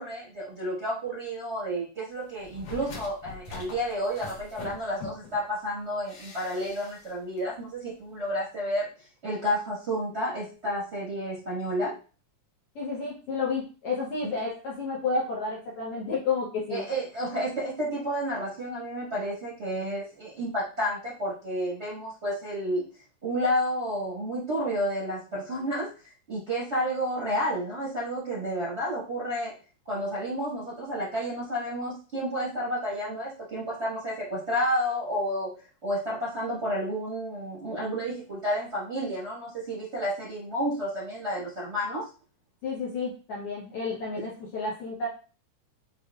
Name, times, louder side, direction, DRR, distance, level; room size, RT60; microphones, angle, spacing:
voice 1, 0.0-8.9 9.2-11.9 14.2-14.3 16.7-22.8 23.2-25.9 26.3-29.5 29.9-35.5 35.8-42.1, equal, 90° right, -6 dB, 0.6 m, -31 dB
sound 1, 2.4-5.4 6.1-7.1 7.4-7.5, left 4 dB, 85° left, 2.8 m, -43 dB
voice 2, 12.7-16.8 42.6-45.1, left 4 dB, 65° left, -4 dB, 1.5 m, -31 dB
6.3 x 2.5 x 2.2 m, 0.35 s
omnidirectional pair, 3.4 m